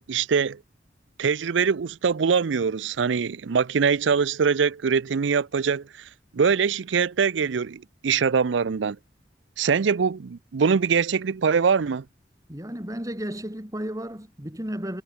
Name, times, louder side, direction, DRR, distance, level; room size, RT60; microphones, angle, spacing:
voice 1, 0.1-0.6 1.2-5.8 6.3-9.0 9.6-12.0, right 6 dB, 75° right, 0.5 m, -23 dB
voice 2, 12.5-15.0, equal, 20° right, 3.2 m, -33 dB
head